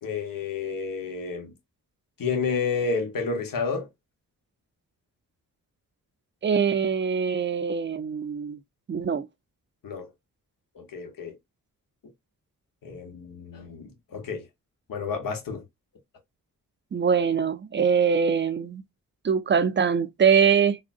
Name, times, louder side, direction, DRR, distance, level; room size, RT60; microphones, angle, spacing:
voice 1, 0.0-1.5 2.2-3.9 9.8-10.1 10.7-11.3 12.8-14.5 14.9-15.6, left 5 dB, 65° left, 1.1 m, -30 dB
voice 2, 6.4-8.6 8.9-9.3 16.9-18.8 19.2-20.8, right 6 dB, 30° right, 0.5 m, -23 dB
3.6 x 2.2 x 2.5 m
cardioid pair, 65°, 35 cm